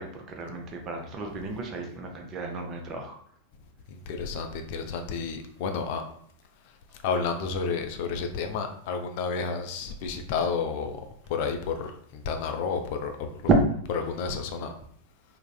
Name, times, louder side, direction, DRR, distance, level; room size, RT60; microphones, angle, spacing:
voice 1, 0.0-3.2 13.5-13.6, right 4 dB, 30° right, 3 dB, 0.5 m, -30 dB
voice 2, 3.9-6.0 7.0-13.5 13.9-14.7, left 5 dB, 50° left, 5 dB, 0.3 m, -31 dB
3.4 x 2.0 x 2.2 m, 0.63 s
figure-of-eight pair, 90°, 0 cm